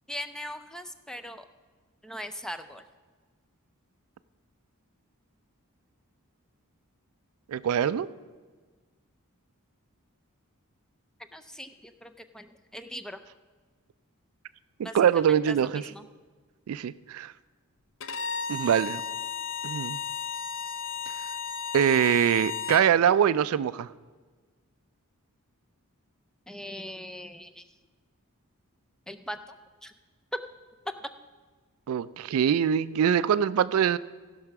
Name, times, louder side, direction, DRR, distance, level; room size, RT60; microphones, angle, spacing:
voice 1, 0.1-1.4 2.0-2.8 11.3-13.2 14.8-14.9 15.5-16.0 26.5-27.6 29.1-29.4 29.8-29.9 30.3-30.4 31.0-31.1, equal, 5° left, 8 dB, 0.4 m, -39 dB
voice 2, 7.5-8.1 14.8-15.9 16.7-17.3 18.5-19.0 19.6-20.0 21.7-23.9 31.9-34.0, right 8 dB, 70° right, 16 dB, 0.3 m, -23 dB
Bowed string instrument, 18.0-22.9, left 6 dB, 60° left, 0.7 m, -34 dB
15.0 x 5.6 x 5.9 m, 1.4 s
head